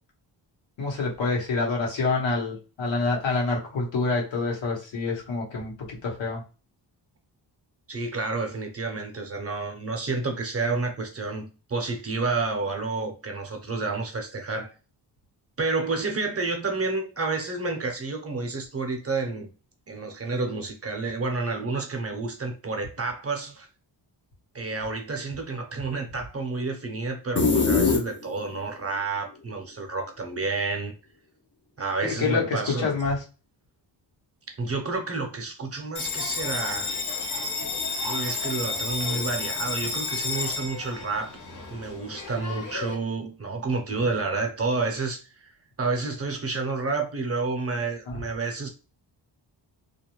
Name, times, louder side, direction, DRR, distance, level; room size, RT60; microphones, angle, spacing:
voice 1, 0.8-5.7 6.0-6.4 32.0-33.2 48.1-48.2, left 3 dB, 80° left, 1.1 m, -27 dB
voice 2, 7.9-14.7 15.6-19.5 19.9-23.7 24.5-30.9 31.8-32.9 34.6-36.9 38.0-41.4 41.7-45.5 45.8-48.7, right 3 dB, 30° right, 0.7 m, -30 dB
sound 1, 27.4-28.6, left 4 dB, 25° left, 0.5 m, -22 dB
Bell, 35.9-42.9, left 4 dB, 40° left, 0.8 m, -31 dB
2.4 x 2.1 x 3.0 m
cardioid pair, 75°, 45 cm